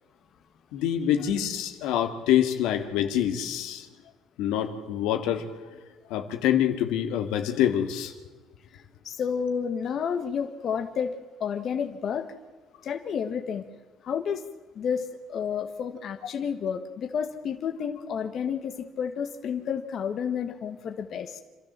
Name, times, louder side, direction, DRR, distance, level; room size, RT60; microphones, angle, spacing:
voice 1, 0.7-3.9 4.4-5.4 6.1-8.1, left 10 dB, 90° left, 6 dB, 2.2 m, -26 dB
voice 2, 8.7-12.3 12.8-13.6 14.0-14.4 14.7-21.4, left 7 dB, 50° left, 6 dB, 1.5 m, -31 dB
27.0 x 13.0 x 7.5 m, 1.3 s
cardioid pair, 130°, 0 cm